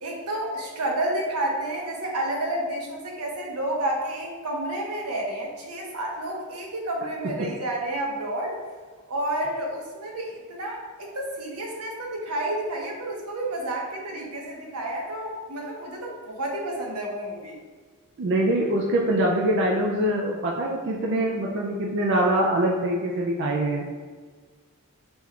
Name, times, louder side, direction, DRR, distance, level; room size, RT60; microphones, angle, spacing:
voice 1, 0.0-8.6 9.1-17.6, right 1 dB, 85° right, -1 dB, 0.8 m, -30 dB
voice 2, 18.2-23.8, right 1 dB, 50° right, -2 dB, 0.4 m, -24 dB
5.2 x 2.4 x 3.2 m, 1.5 s
head